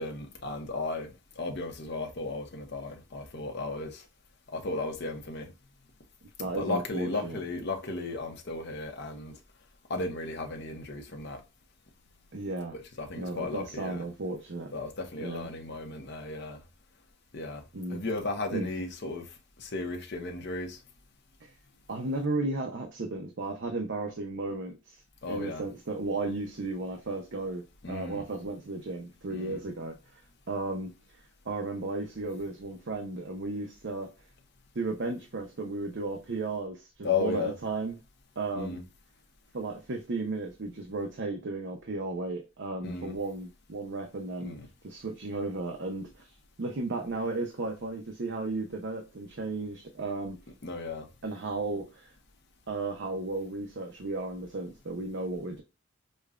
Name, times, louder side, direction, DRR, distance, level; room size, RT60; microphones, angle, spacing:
voice 1, 0.0-4.0 4.5-5.5 6.4-9.3 9.9-11.4 12.7-14.1 14.7-16.6 17.3-17.6 17.9-19.3 19.6-20.8 25.2-25.7 27.8-28.2 29.3-29.6 37.0-37.6 38.5-38.8 42.8-43.2 44.4-44.7 50.6-51.1, left 3 dB, 55° left, 0.8 m, -35 dB
voice 2, 6.4-7.4 12.3-12.7 13.2-14.7 15.2-15.5 17.7-18.0 18.5-18.7 21.4-21.5 21.9-25.0 25.3-29.9 30.5-30.9 31.5-34.1 34.7-38.0 38.4-38.8 39.5-44.5 44.8-46.3 46.6-50.4 51.2-52.1 52.7-55.6, right 2 dB, 60° right, 0.7 m, -34 dB
5.3 x 2.2 x 2.4 m
head